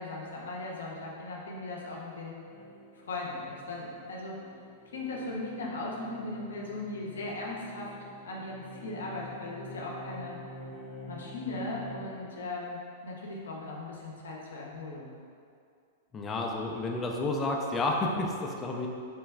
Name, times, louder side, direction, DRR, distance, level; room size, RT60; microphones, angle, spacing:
voice 1, 0.0-2.3 2.9-4.4 4.9-7.9 8.2-10.4 11.1-15.1, left 2 dB, 80° left, -2 dB, 0.6 m, -38 dB
sound 1, 2.5-12.2, left 1 dB, ahead, 0.8 m, -47 dB
voice 2, 16.1-18.9, left 2 dB, 25° left, 0 dB, 0.4 m, -30 dB
3.3 x 2.2 x 3.4 m, 2.4 s
hypercardioid pair, 105°, 0 cm